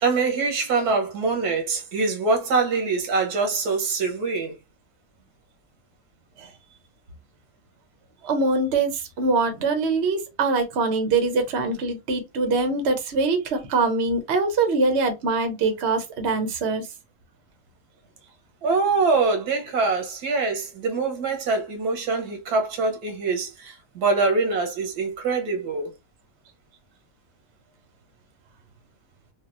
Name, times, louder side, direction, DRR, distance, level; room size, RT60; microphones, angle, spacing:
voice 1, 0.0-4.6 18.6-25.9, right 4 dB, 90° right, 1.4 m, -24 dB
voice 2, 8.2-16.9, right 3 dB, 55° right, 0.9 m, -23 dB
3.5 x 2.3 x 2.4 m
omnidirectional pair, 1.6 m